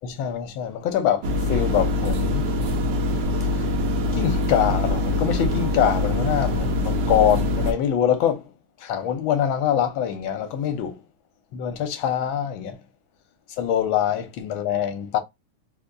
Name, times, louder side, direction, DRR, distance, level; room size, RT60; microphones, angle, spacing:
voice 1, 0.0-2.5 3.6-3.7 4.1-8.5 8.8-11.0 11.5-12.8 13.6-15.2, left 9 dB, 70° left, 1.5 m, -24 dB
sound 1, 1.2-7.7, left 2 dB, 65° right, 1.3 m, -24 dB
4.0 x 2.8 x 2.5 m
omnidirectional pair, 2.4 m